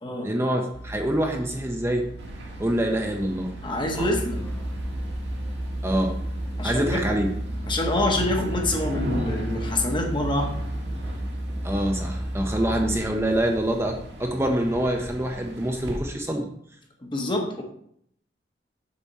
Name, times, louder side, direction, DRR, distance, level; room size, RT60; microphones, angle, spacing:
voice 1, 0.2-2.1 2.6-3.5 3.9-4.1 5.8-6.2 6.6-7.3 11.6-16.5, right 1 dB, 15° right, 2 dB, 0.7 m, -25 dB
sound 1, 0.7-11.4, right 1 dB, 75° left, 1.2 m, -41 dB
sound 2, 2.2-16.0, equal, 75° right, 1.7 m, -39 dB
voice 2, 3.6-4.5 6.6-7.1 7.7-10.5 17.0-17.6, left 1 dB, 30° left, 2 dB, 1.3 m, -26 dB
sound 3, 4.0-13.1, right 1 dB, 10° left, 1.2 m, -32 dB
7.2 x 6.0 x 4.2 m, 0.69 s
head